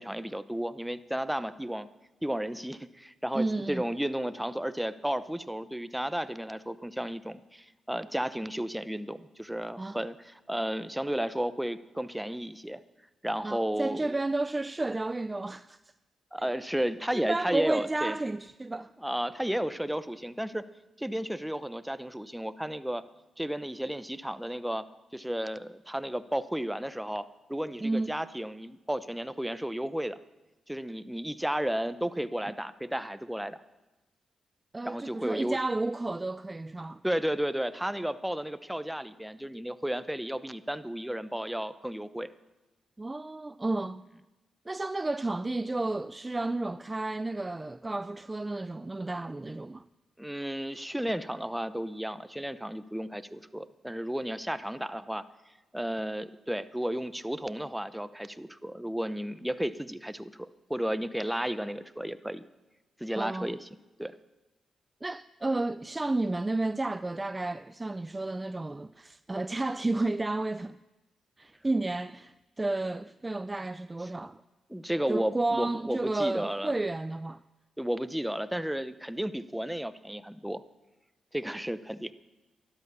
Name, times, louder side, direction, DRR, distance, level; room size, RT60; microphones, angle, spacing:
voice 1, 0.0-1.9 2.2-12.8 13.2-14.0 16.3-18.2 19.0-20.6 21.0-23.0 23.4-24.9 25.1-30.2 30.7-33.6 34.8-35.6 37.0-42.3 50.2-55.2 55.7-62.4 63.0-63.7 64.0-64.1 74.7-76.7 77.8-80.6 81.3-82.1, equal, 5° right, 0.7 m, -33 dB
voice 2, 3.3-3.8 9.8-10.0 13.4-15.8 16.4-16.5 17.1-18.9 27.8-28.1 32.5-32.6 34.7-37.0 43.0-44.0 44.7-49.9 63.2-63.6 65.0-70.8 71.4-74.4 75.1-77.4, right 2 dB, 20° right, 0.4 m, -32 dB
12.5 x 11.0 x 6.8 m
cardioid pair, 65°, 0 cm